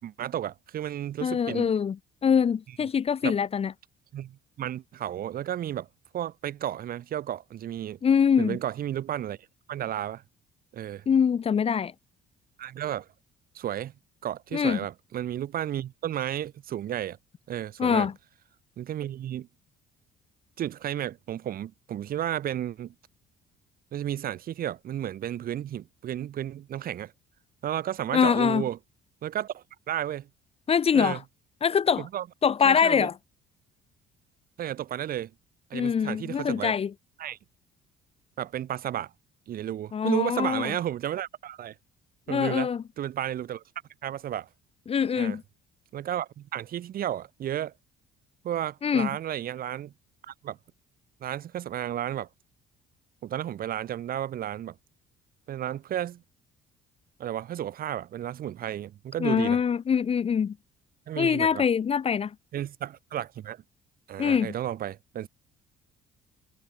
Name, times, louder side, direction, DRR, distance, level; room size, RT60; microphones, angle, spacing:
voice 1, 0.0-1.7 3.2-3.4 4.1-5.9 6.1-8.0 8.4-9.4 9.7-10.2 10.7-11.0 12.6-13.1 13.5-13.9 14.2-17.2 17.5-18.1 18.8-19.5 20.6-22.9 23.9-27.1 27.6-28.8 29.2-30.3 30.9-31.2 32.0-32.3 32.6-33.1 34.6-35.3 35.7-36.7 37.2-37.4 38.4-39.1 39.5-41.7 42.3-42.7 43.0-43.6 44.0-44.5 45.2-45.4 45.9-47.7 48.4-49.9 50.3-50.6 51.2-52.3 53.2-54.7 55.5-56.2 57.2-59.6 61.1-61.7 62.5-63.6 64.1-65.3, right 11 dB, 60° right, 6.3 m, -33 dB
voice 2, 1.2-2.0 2.2-3.7 8.0-8.6 11.1-11.9 14.5-14.8 17.8-18.1 28.1-28.6 30.7-31.2 31.6-32.1 32.4-33.1 35.7-36.9 39.9-40.7 42.3-42.8 44.9-45.4 48.8-49.1 59.2-60.5 61.2-62.3 64.2-64.5, left 7 dB, 35° left, 1.1 m, -24 dB
cardioid pair, 110°, 17 cm